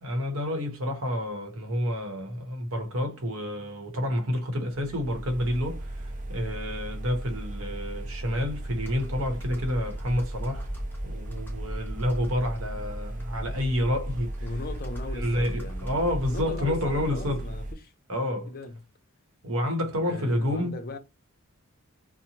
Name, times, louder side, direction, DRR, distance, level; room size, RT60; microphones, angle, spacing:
voice 1, 0.0-10.7 11.0-14.5 15.1-17.4 18.1-18.5 19.4-20.8, left 1 dB, 70° right, 0.9 m, -29 dB
sound 1, 4.7-17.7, right 1 dB, 35° right, 0.5 m, -36 dB
Computer keyboard, 8.7-17.3, equal, 10° left, 0.7 m, -40 dB
voice 2, 14.4-16.0 16.3-17.9 18.3-18.8 20.1-21.0, left 2 dB, 45° left, 0.5 m, -38 dB
2.8 x 2.1 x 2.8 m
head